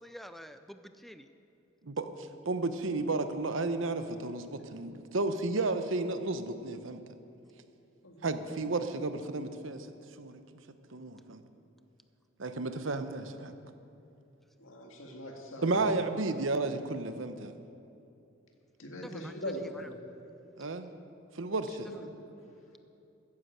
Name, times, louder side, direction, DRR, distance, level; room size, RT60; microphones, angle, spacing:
voice 1, 0.0-1.3 19.0-19.9, equal, ahead, 9 dB, 0.4 m, -48 dB
voice 2, 1.9-7.0 8.2-9.9 10.2-10.4 10.9-11.4 12.4-13.5 15.6-17.5 20.6-20.9 21.3-21.9, right 3 dB, 70° right, 9 dB, 0.9 m, -32 dB
voice 3, 8.0-8.5 14.6-15.8 18.8-19.9, equal, 85° left, 2 dB, 2.0 m, -41 dB
14.0 x 9.9 x 7.9 m, 2.7 s
head